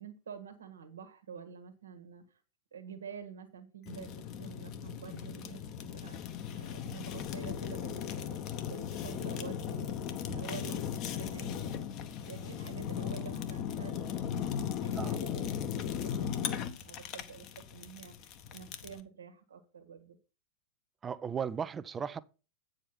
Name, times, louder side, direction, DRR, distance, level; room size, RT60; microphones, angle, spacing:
voice 1, 0.0-2.4 2.7-10.8 11.1-11.9 12.2-14.2 14.8-15.5 15.9-20.2, right 7 dB, 75° right, 1.4 m, -48 dB
Fire, 3.9-19.0, left 8 dB, 45° left, 1.0 m, -37 dB
voice 2, 21.0-22.2, right 7 dB, 20° right, 0.6 m, -36 dB
8.7 x 5.1 x 5.7 m
figure-of-eight pair, 90°, 0 cm